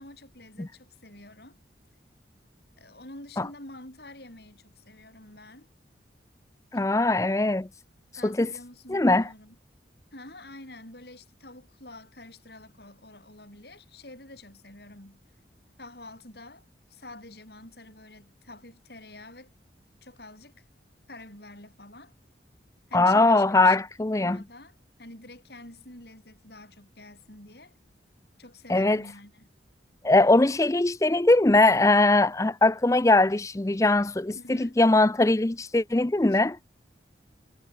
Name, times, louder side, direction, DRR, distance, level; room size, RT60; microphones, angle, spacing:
voice 1, 0.0-1.6 2.8-5.7 8.2-9.6 10.1-15.2 15.8-19.5 20.0-20.6 21.1-22.1 22.9-23.8 24.1-27.7 28.4-29.5 34.3-34.8 36.3-36.4, left 2 dB, 60° left, 7.0 m, -47 dB
voice 2, 6.7-7.7 8.2-8.5 8.9-9.3 22.9-24.4 28.7-29.0 30.0-36.6, left 2 dB, 15° left, 0.5 m, -21 dB
head